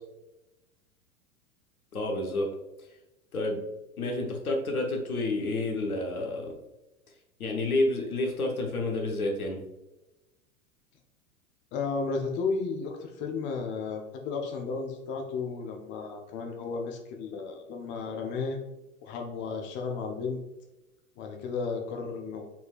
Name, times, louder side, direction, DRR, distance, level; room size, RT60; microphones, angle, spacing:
voice 1, 1.9-2.5 3.3-3.7 4.0-6.5 7.4-9.6, left 2 dB, 80° left, 1 dB, 1.1 m, -29 dB
voice 2, 11.7-18.6 19.0-20.4 21.2-22.4, left 4 dB, 25° left, 2 dB, 0.6 m, -33 dB
4.3 x 4.2 x 2.4 m, 1.0 s
figure-of-eight pair, 95°, 43 cm